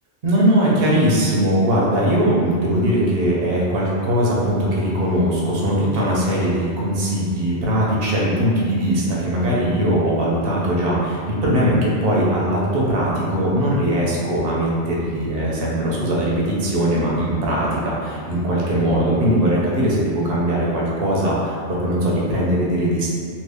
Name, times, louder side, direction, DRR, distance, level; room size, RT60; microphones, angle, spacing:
voice 1, 0.2-23.1, right 1 dB, 60° right, -5 dB, 0.9 m, -20 dB
2.8 x 2.7 x 3.4 m, 2.2 s
omnidirectional pair, 1.2 m